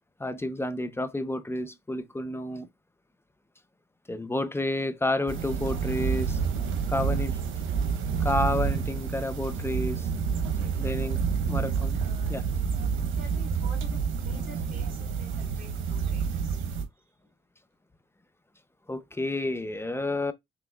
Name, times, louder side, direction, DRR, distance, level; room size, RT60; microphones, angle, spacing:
voice 1, 0.2-2.7 4.1-6.4 6.9-7.4 8.2-10.1 10.8-11.2 11.5-12.0 12.3-12.4 18.9-20.3, left 1 dB, 10° left, 0.5 m, -30 dB
sound 1, 5.3-16.8, right 6 dB, 80° right, 0.9 m, -29 dB
voice 2, 9.4-9.9 10.4-11.1 11.5-12.5 12.9-17.0, equal, 45° right, 3.3 m, -50 dB
6.0 x 3.1 x 2.3 m
cardioid pair, 90°, 20 cm